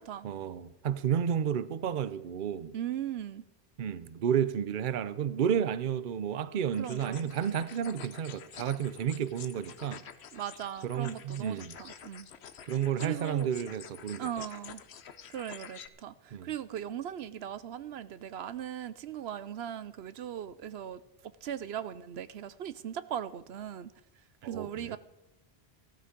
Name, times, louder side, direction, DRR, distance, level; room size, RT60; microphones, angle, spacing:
voice 1, 0.2-2.7 3.8-10.0 10.8-11.8 12.7-14.3 16.3-16.5 24.4-25.0, right 8 dB, 55° right, 0.8 m, -31 dB
voice 2, 2.7-3.4 6.8-7.3 10.3-12.3 13.0-13.5 14.2-14.8 15.3-21.0 21.4-23.9 24.4-25.0, right 10 dB, 80° right, 0.9 m, -39 dB
sound 1, 6.7-15.9, left 7 dB, 85° left, 1.1 m, -48 dB
15.0 x 13.0 x 5.2 m
omnidirectional pair, 1.1 m